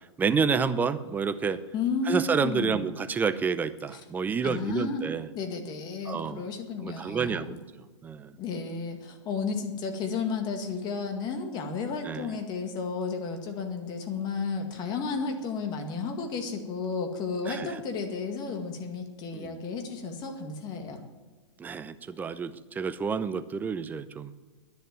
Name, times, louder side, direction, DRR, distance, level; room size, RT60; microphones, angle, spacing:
voice 1, 0.0-1.6 2.1-5.3 6.1-6.4 6.8-7.6 8.0-8.3 12.0-12.4 17.5-17.8 19.3-19.6 21.6-24.3, right 5 dB, 10° right, 11 dB, 0.6 m, -29 dB
voice 2, 1.7-2.9 3.9-4.0 4.4-5.1 5.4-7.6 8.4-21.0, left 4 dB, 25° left, 5 dB, 2.0 m, -33 dB
11.0 x 10.5 x 9.3 m, 1.3 s
hypercardioid pair, 135°, 16 cm